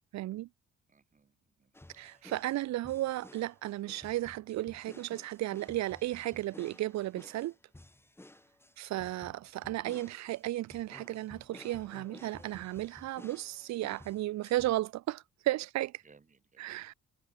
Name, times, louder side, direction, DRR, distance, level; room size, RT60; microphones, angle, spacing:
voice 1, 0.1-0.5 2.0-7.5 8.8-16.0 16.6-16.9, right 15 dB, 65° right, 0.5 m, -34 dB
voice 2, 0.9-1.7 2.0-2.3 16.0-16.9, right 5 dB, 25° right, 1.1 m, -64 dB
sound 1, 1.7-14.8, left 1 dB, 10° left, 1.7 m, -55 dB
cardioid pair, 90°, 30 cm